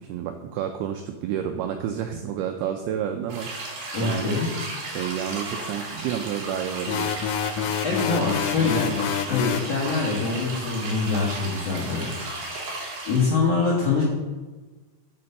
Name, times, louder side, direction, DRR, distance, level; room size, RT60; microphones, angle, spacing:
voice 1, 0.0-4.4 4.9-7.2 7.6-7.7, right 9 dB, 85° right, 6 dB, 2.2 m, -30 dB
sound 1, 3.3-13.3, right 2 dB, 55° right, 3.9 m, -34 dB
voice 2, 3.9-4.5 7.5-8.9 9.3-12.1 12.6-12.8 13.1-14.0, left 4 dB, 55° left, -5 dB, 1.8 m, -24 dB
sound 2, 6.9-9.7, left 9 dB, 90° left, 3.0 m, -27 dB
8.6 x 6.7 x 6.5 m, 1.2 s
omnidirectional pair, 5.2 m